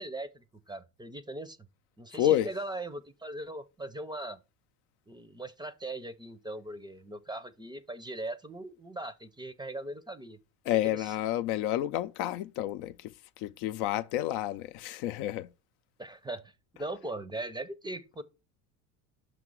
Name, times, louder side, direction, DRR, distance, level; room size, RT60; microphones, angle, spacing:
voice 1, 0.0-1.6 2.0-4.4 5.1-10.4 10.7-11.1 16.0-18.2, right 2 dB, 10° right, 0.6 m, -40 dB
voice 2, 2.1-2.5 10.7-15.5, left 13 dB, 65° left, 0.6 m, -30 dB
5.9 x 4.2 x 6.2 m
supercardioid pair, 90°, 44 cm